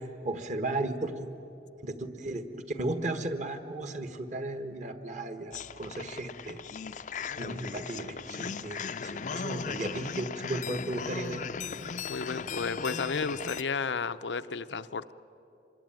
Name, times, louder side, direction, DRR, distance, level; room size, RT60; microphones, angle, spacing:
voice 1, 0.2-1.3 1.8-6.6 7.4-11.5, right 2 dB, 45° right, 8 dB, 1.5 m, -35 dB
sound 1, 5.5-13.6, left 6 dB, 45° left, 0.5 m, -37 dB
voice 2, 12.1-15.1, left 5 dB, 85° left, 13 dB, 0.7 m, -33 dB
26.0 x 22.0 x 9.1 m, 2.9 s
head